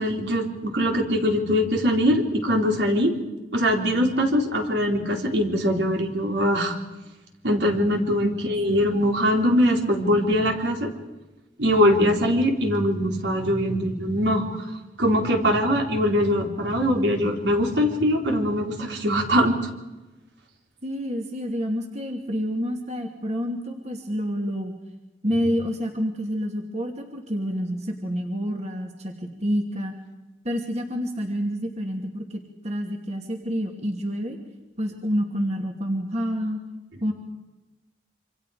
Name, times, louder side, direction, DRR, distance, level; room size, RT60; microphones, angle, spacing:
voice 1, 0.0-3.1 3.5-6.8 7.4-10.9 11.6-14.7 15.0-19.6, equal, 75° right, 2 dB, 3.9 m, -22 dB
voice 2, 7.9-8.4 8.7-8.8 20.8-24.8 25.2-29.9 30.4-34.4 34.8-36.6 37.0-37.1, equal, 40° right, 2 dB, 2.5 m, -28 dB
27.5 x 26.0 x 5.0 m, 1.1 s
head